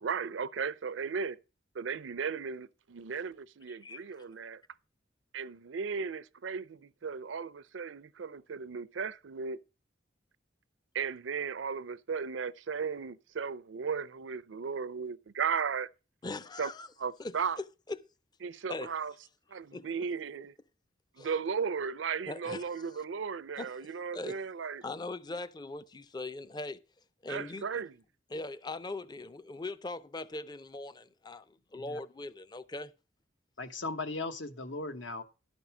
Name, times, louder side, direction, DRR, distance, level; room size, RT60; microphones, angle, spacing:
voice 1, 0.0-1.4 1.7-4.6 5.3-9.6 10.9-15.9 16.6-16.7 17.0-17.6 18.4-19.1 19.5-20.5 21.2-24.8 27.3-27.9, right 6 dB, 85° right, 0.5 m, -36 dB
voice 2, 16.2-16.9 17.2-18.0 18.7-18.9 19.7-19.9 21.2-21.3 22.3-22.9 23.6-24.4 24.8-26.8 27.2-27.8 28.3-32.9, left 2 dB, 20° left, 0.5 m, -40 dB
voice 3, 33.6-35.2, left 3 dB, 75° left, 1.2 m, -37 dB
11.5 x 5.3 x 6.0 m
head